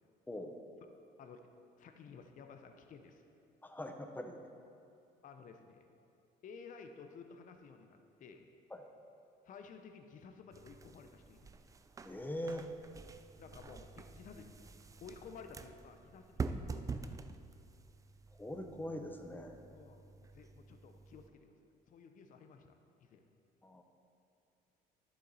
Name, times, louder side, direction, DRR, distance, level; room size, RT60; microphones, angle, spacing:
voice 1, 0.3-0.6 3.6-4.4 8.7-8.9 12.0-12.7 18.3-19.6 23.6-23.8, left 1 dB, 10° left, 5 dB, 0.8 m, -42 dB
voice 2, 1.8-3.2 5.2-5.9 6.4-8.5 9.4-11.6 13.4-14.5 15.0-17.4 19.7-21.5 21.9-22.7 23.0-23.3, left 5 dB, 50° left, 6 dB, 0.7 m, -54 dB
sound 1, 10.5-21.3, right 4 dB, 20° right, 0.3 m, -47 dB
11.5 x 7.2 x 4.1 m, 2.6 s
cardioid pair, 110°, 17 cm